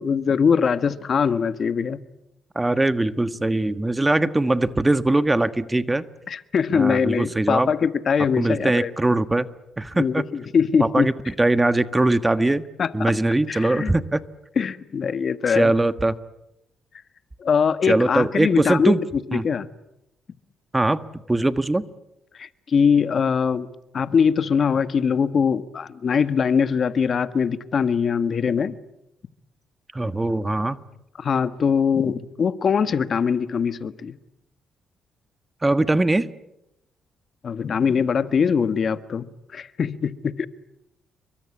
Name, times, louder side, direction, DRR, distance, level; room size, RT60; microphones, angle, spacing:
voice 1, 0.0-2.0 6.3-8.9 10.0-11.1 12.8-13.1 13.5-13.9 14.6-15.7 17.4-18.9 19.3-19.7 22.3-23.7 23.9-28.7 31.2-34.2 37.4-39.3 39.5-40.5, left 6 dB, 50° left, 1.4 m, -22 dB
voice 2, 2.5-6.0 6.7-7.7 8.4-9.5 9.8-10.2 10.8-11.1 11.4-12.6 12.9-14.2 15.5-16.1 17.9-19.0 19.3-19.5 20.7-21.8 29.9-30.8 35.6-36.3, right 2 dB, 15° right, 1.4 m, -21 dB
29.0 x 24.0 x 8.7 m
cardioid pair, 90°, 0 cm